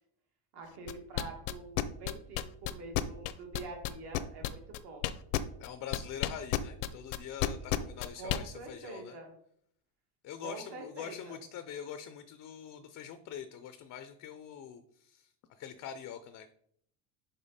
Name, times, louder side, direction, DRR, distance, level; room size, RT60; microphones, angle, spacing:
voice 1, 0.5-5.1 8.2-9.3 10.4-11.4, right 3 dB, 55° right, 2 dB, 2.0 m, -45 dB
sound 1, 0.9-8.4, left 15 dB, 80° left, 0.6 m, -31 dB
voice 2, 5.6-9.2 10.2-16.5, left 8 dB, 40° left, 10 dB, 0.4 m, -44 dB
5.4 x 5.1 x 4.1 m, 0.67 s
cardioid pair, 140°, 48 cm